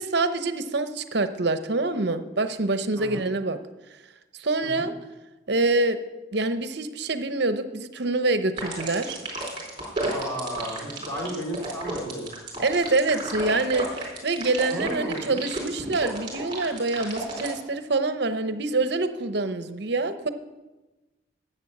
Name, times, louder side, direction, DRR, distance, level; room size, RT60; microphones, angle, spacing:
voice 1, 0.0-3.6 4.4-4.9 5.5-6.0 6.3-9.2 12.6-20.3, right 3 dB, 60° right, 10 dB, 0.8 m, -26 dB
voice 2, 3.0-3.3 4.6-4.9 10.1-12.3 14.7-15.4, right 1 dB, 15° left, -3 dB, 2.9 m, -33 dB
sound 1, 8.6-17.5, right 2 dB, 25° right, 4.2 m, -32 dB
12.0 x 8.2 x 7.2 m, 1.1 s
head